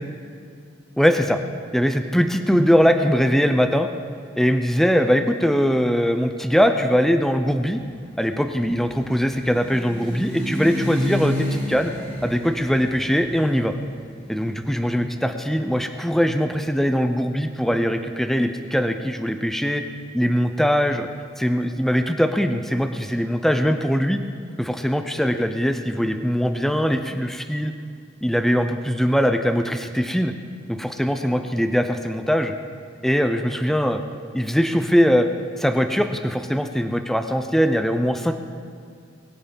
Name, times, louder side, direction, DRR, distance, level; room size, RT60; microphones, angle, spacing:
voice 1, 1.0-1.4 1.7-3.9 4.4-7.8 8.2-11.9 12.2-13.7 14.3-19.8 20.1-21.1 21.4-24.2 24.6-27.7 28.2-30.3 30.7-32.5 33.0-34.0 34.3-35.3 35.6-38.3, equal, ahead, 6 dB, 0.6 m, -21 dB
sound 1, 7.9-15.7, equal, 30° left, 3.7 m, -31 dB
21.5 x 8.0 x 5.3 m, 2.3 s
head